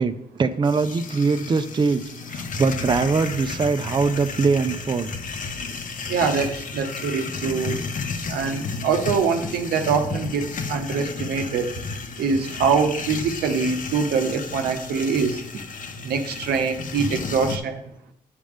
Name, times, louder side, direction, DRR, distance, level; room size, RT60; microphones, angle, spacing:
voice 1, 0.0-5.1, right 4 dB, 30° right, 10 dB, 0.5 m, -22 dB
sound 1, 0.6-17.6, left 4 dB, 55° left, 0.8 m, -33 dB
voice 2, 6.1-7.8 8.3-11.7 12.2-15.4 16.0-17.8, right 5 dB, 80° right, 6 dB, 0.8 m, -24 dB
8.8 x 5.0 x 3.5 m, 0.77 s
supercardioid pair, 60°, 16 cm